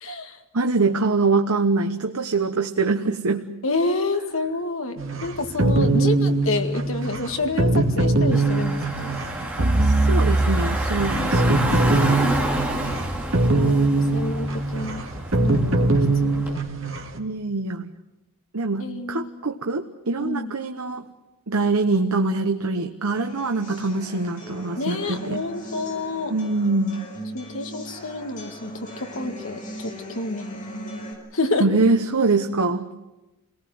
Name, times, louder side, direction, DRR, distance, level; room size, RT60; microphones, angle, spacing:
voice 1, 0.0-0.4 3.6-9.1 11.1-12.5 13.4-15.0 15.4-16.6 18.8-19.3 20.2-20.5 24.8-26.3 27.3-28.7 29.0-31.1 31.3-31.6, left 2 dB, 70° left, 5 dB, 2.1 m, -29 dB
voice 2, 0.5-3.5 5.6-6.0 9.8-12.1 17.2-17.9 18.5-21.0 21.5-25.5 26.3-27.0 31.6-32.9, right 3 dB, 90° right, 5 dB, 1.1 m, -24 dB
sound 1, 5.0-17.2, right 2 dB, 65° right, 2.1 m, -21 dB
Car / Engine, 8.3-16.5, right 1 dB, 5° right, 3.2 m, -29 dB
sound 2, 23.1-31.1, equal, 35° left, 6.1 m, -39 dB
28.5 x 18.5 x 7.9 m, 1.0 s
head